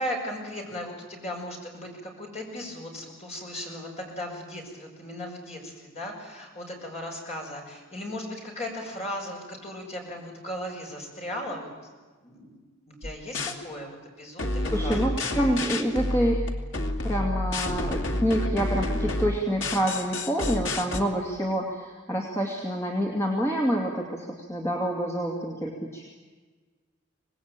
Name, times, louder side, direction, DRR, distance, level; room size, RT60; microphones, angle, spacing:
voice 1, 0.0-11.7 12.2-12.5 12.9-13.9 14.2-15.0 15.3-15.6, left 1 dB, 35° left, 0 dB, 6.4 m, -37 dB
sound 1, 13.0-13.6 14.4-21.0, left 1 dB, 70° left, 2.4 m, -29 dB
voice 2, 14.7-16.4 17.0-26.1, equal, 15° left, -1 dB, 2.6 m, -27 dB
25.5 x 19.5 x 9.0 m, 1.4 s
head